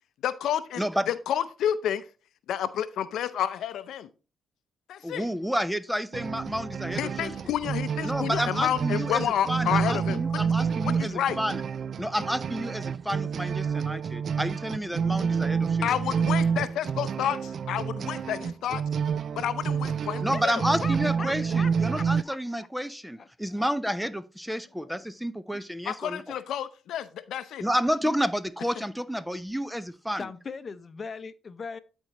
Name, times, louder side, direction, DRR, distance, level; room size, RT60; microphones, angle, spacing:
voice 1, 0.2-2.1 2.5-4.1 4.9-5.3 7.0-10.5 10.8-11.4 15.8-18.8 19.4-20.6 25.9-27.6, left 10 dB, 75° left, 0.5 m, -30 dB
voice 2, 5.0-7.3 8.0-9.2 9.5-11.6 12.0-15.9 20.2-26.2 27.6-30.2, equal, ahead, 0.5 m, -30 dB
sound 1, 6.1-22.2, right 6 dB, 55° right, 0.3 m, -29 dB
voice 3, 20.8-22.4 23.2-23.6 24.7-25.0 28.0-28.2 30.1-31.8, left 5 dB, 35° left, 0.8 m, -39 dB
12.5 x 4.4 x 2.9 m
cardioid pair, 90°, 0 cm